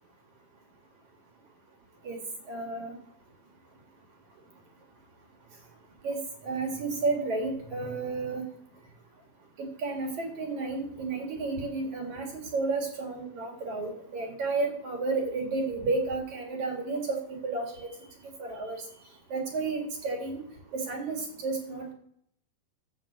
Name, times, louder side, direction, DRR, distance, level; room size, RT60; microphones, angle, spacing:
voice 1, 2.5-2.9 6.0-6.2 6.4-8.4 9.8-12.3 12.5-17.9 18.4-18.8 19.3-20.4 20.7-21.9, right 3 dB, 50° right, 1 dB, 3.1 m, -31 dB
14.0 x 6.1 x 7.5 m, 0.69 s
omnidirectional pair, 4.8 m